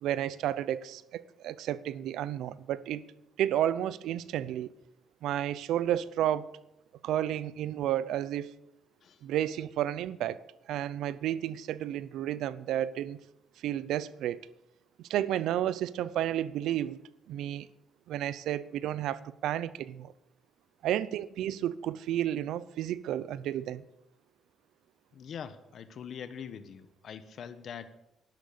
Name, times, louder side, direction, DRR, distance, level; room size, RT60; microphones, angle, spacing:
voice 1, 0.0-3.0 3.4-4.7 5.2-6.6 7.0-8.5 9.2-13.2 13.6-14.4 15.0-17.0 17.3-17.7 18.1-20.1 20.8-23.8, right 11 dB, 85° right, 0.6 m, -32 dB
voice 2, 25.1-27.9, left 7 dB, 60° left, 1.2 m, -43 dB
12.0 x 12.0 x 6.8 m
cardioid pair, 90°, 0 cm